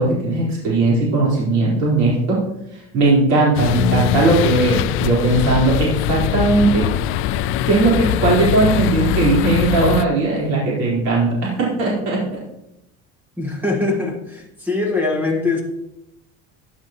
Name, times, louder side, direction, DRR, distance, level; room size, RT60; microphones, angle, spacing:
voice 1, 0.0-2.4 2.9-6.9 7.7-11.3 11.6-12.2, right 2 dB, 60° right, -5 dB, 4.1 m, -18 dB
sound 1, 3.5-10.0, left 11 dB, 45° left, 0.4 m, -21 dB
voice 2, 13.4-15.6, left 3 dB, 5° right, 1 dB, 1.7 m, -22 dB
14.0 x 9.3 x 3.0 m, 0.82 s
cardioid pair, 175°, 30 cm